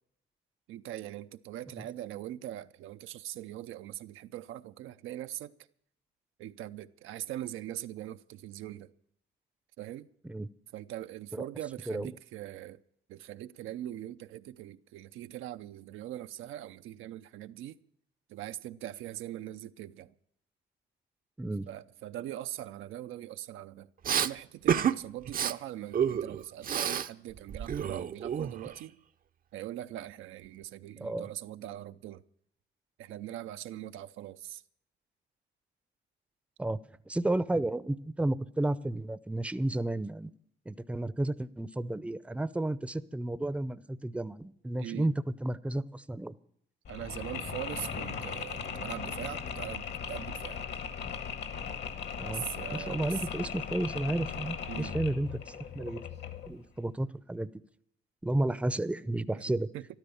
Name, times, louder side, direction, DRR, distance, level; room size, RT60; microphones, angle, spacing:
voice 1, 0.7-5.5 6.4-8.9 9.8-10.1 10.7-12.8 13.1-17.8 18.3-20.1 21.7-29.0 29.5-32.2 33.0-34.6 44.8-45.1 46.9-50.7 52.2-53.2 54.7-55.0 59.3-59.5 59.7-59.9, right 13 dB, 85° right, 0.6 m, -41 dB
Respiratory sounds, 24.0-24.3 24.7-25.0 25.3-25.5 25.9-27.1 27.4-28.8, right 8 dB, 45° right, 0.6 m, -29 dB
voice 2, 31.0-31.3 36.6-36.8 37.1-40.3 40.7-45.1 45.4-46.3 52.2-52.4 52.7-56.0 56.5-57.5 58.2-59.7, right 1 dB, 5° right, 0.6 m, -32 dB
Mechanisms, 46.8-56.6, left 7 dB, 60° left, 1.5 m, -38 dB
13.5 x 12.0 x 7.0 m
cardioid pair, 90°, 20 cm